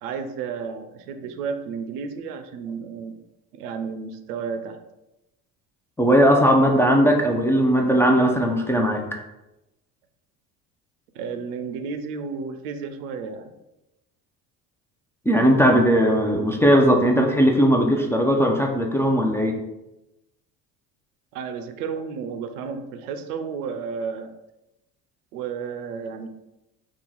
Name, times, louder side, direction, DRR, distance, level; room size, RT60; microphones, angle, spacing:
voice 1, 0.0-3.2 3.5-4.7 11.1-13.5 21.3-24.3 25.3-26.3, right 5 dB, 90° right, 8 dB, 0.5 m, -32 dB
voice 2, 6.0-9.2 15.3-19.6, equal, 5° left, 0 dB, 0.4 m, -18 dB
2.8 x 2.4 x 3.9 m, 0.94 s
hypercardioid pair, 80°, 44 cm